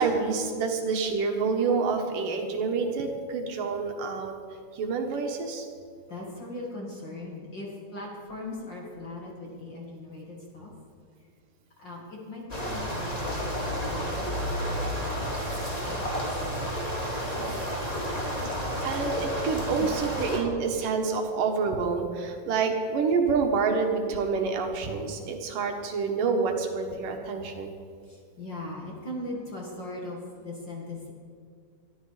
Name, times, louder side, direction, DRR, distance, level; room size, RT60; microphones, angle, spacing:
voice 1, 0.0-4.3 4.7-5.7 18.8-27.7, right 5 dB, 70° right, 3 dB, 2.9 m, -27 dB
voice 2, 6.1-10.7 11.8-16.2 19.1-19.2 19.8-19.9 27.5-27.6 28.0-31.1, left 2 dB, 35° left, -2 dB, 2.3 m, -40 dB
sound 1, 12.5-20.4, equal, 10° left, 2.3 m, -31 dB
21.5 x 13.5 x 4.9 m, 2.1 s
omnidirectional pair, 4.0 m